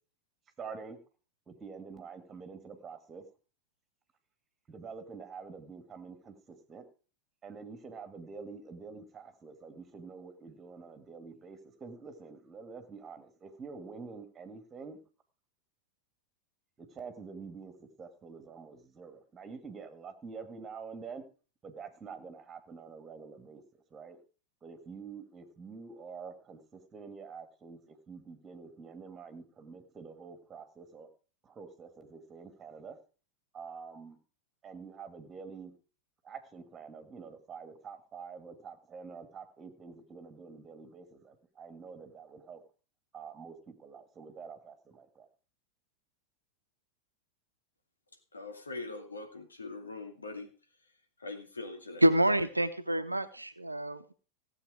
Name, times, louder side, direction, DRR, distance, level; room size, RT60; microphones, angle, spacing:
voice 1, 0.6-1.0 1.5-3.2 4.7-6.8 7.4-15.0 16.8-17.7 18.0-21.2 21.6-23.6 23.9-24.2 24.6-31.1 31.4-33.0 33.5-34.2 34.6-35.7 36.2-42.6 43.1-45.3, right 5 dB, 20° right, 2.2 m, -47 dB
voice 2, 48.3-50.5 51.2-52.0, left 3 dB, 75° left, 2.3 m, -42 dB
voice 3, 52.0-54.1, right 1 dB, 85° right, 0.8 m, -27 dB
16.0 x 8.0 x 5.0 m
figure-of-eight pair, 90°, 0 cm